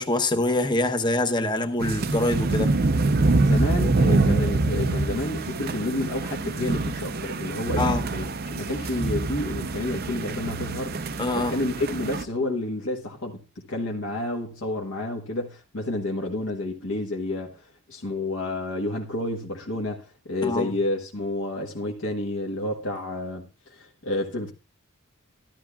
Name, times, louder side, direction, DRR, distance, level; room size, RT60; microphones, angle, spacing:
voice 1, 0.0-2.7 7.8-8.0 11.2-11.6 20.4-20.7, left 2 dB, 20° left, 0.8 m, -25 dB
sound 1, 1.8-12.2, right 3 dB, 45° right, 0.6 m, -25 dB
voice 2, 3.4-10.9 11.4-13.4 13.7-24.5, left 2 dB, 65° left, 1.2 m, -30 dB
13.5 x 12.0 x 2.3 m
head